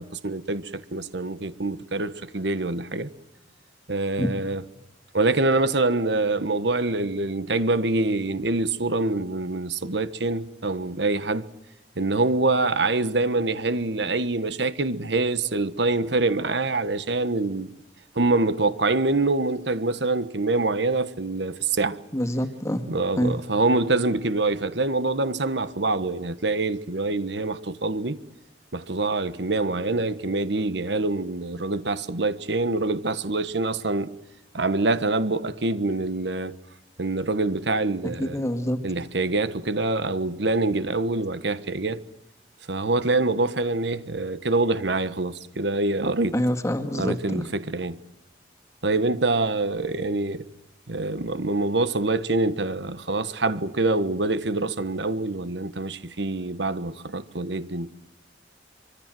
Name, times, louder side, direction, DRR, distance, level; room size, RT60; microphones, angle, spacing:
voice 1, 0.0-3.1 3.9-4.6 5.1-11.5 12.0-17.7 18.1-22.0 22.9-28.2 28.7-34.1 34.5-36.5 37.0-38.4 38.8-42.0 42.7-46.4 46.9-48.0 48.8-50.4 50.9-57.9, right 2 dB, 70° right, 1.4 m, -25 dB
voice 2, 22.1-22.8 23.2-23.4 38.2-38.8 46.3-47.4, equal, 15° left, 2.1 m, -26 dB
25.5 x 24.5 x 7.7 m
head